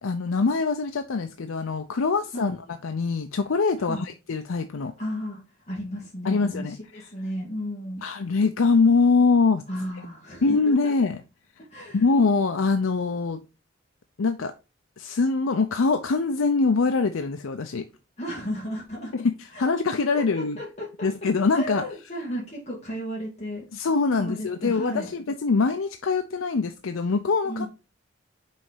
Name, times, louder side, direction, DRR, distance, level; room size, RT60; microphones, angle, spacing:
voice 1, 0.0-4.9 6.2-7.1 8.0-9.6 10.4-11.2 11.9-13.4 14.2-14.5 15.0-17.9 19.1-20.6 21.0-21.9 23.7-27.7, left 4 dB, 85° left, 0.6 m, -23 dB
voice 2, 5.0-5.4 5.7-8.0 9.7-10.9 11.7-12.0 18.2-19.1 19.5-19.7 20.1-21.1 21.5-23.7 24.2-25.1 27.4-27.7, equal, 35° left, 2.0 m, -34 dB
5.5 x 4.1 x 4.9 m
head